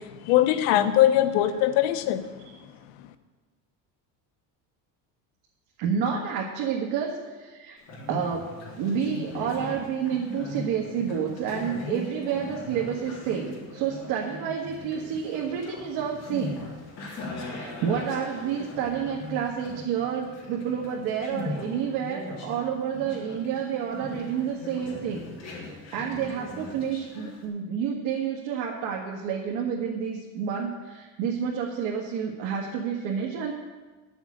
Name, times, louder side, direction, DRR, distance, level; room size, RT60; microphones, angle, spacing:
voice 1, 0.0-2.3, left 12 dB, 85° left, 9 dB, 1.1 m, -21 dB
voice 2, 5.8-7.8 8.1-8.5 8.8-16.7 17.0-33.5, right 7 dB, 90° right, -2 dB, 1.8 m, -29 dB
Conversation, 7.8-27.5, left 2 dB, 35° left, 3.5 m, -40 dB
10.5 x 7.1 x 8.6 m, 1.3 s
cardioid pair, 175°, 43 cm